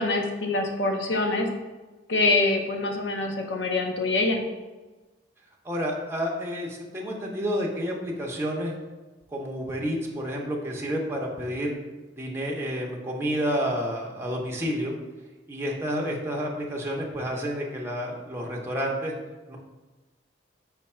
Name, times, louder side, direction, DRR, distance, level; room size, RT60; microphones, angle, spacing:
voice 1, 0.0-1.5 2.1-4.4, left 2 dB, 85° left, 4 dB, 0.6 m, -25 dB
voice 2, 5.6-8.7 9.3-11.8 12.2-14.9 15.5-19.1 19.5-19.6, equal, 15° right, -2 dB, 0.6 m, -30 dB
5.0 x 2.3 x 4.2 m, 1.2 s
head